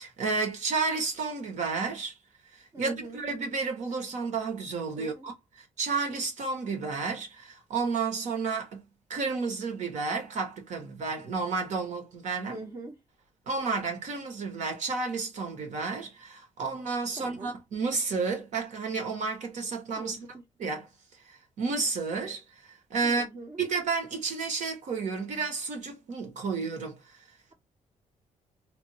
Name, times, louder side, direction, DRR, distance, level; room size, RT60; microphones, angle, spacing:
voice 1, 0.0-2.2 2.8-8.8 9.1-12.6 13.5-20.2 20.6-20.9 21.3-23.3 23.6-27.0, right 4 dB, 60° right, 1.3 m, -31 dB
voice 2, 2.7-3.2 5.0-5.3 12.5-12.9 17.2-17.5 20.0-20.3 23.0-23.6, right 2 dB, 30° right, 0.9 m, -42 dB
3.4 x 2.5 x 2.9 m
cardioid pair, 155°, 14 cm